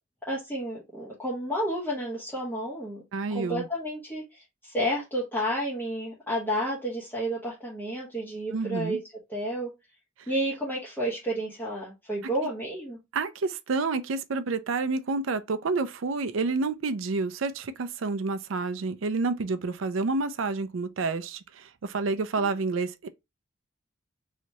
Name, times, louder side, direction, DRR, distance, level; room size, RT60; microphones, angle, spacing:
voice 1, 0.3-3.0 3.3-9.0 9.3-9.7 10.3-13.0 22.4-22.5, equal, 10° left, 1.0 m, -31 dB
voice 2, 3.1-3.7 8.5-9.0 10.2-10.3 13.1-23.1, right 3 dB, 70° right, 0.5 m, -29 dB
3.2 x 3.0 x 2.7 m
head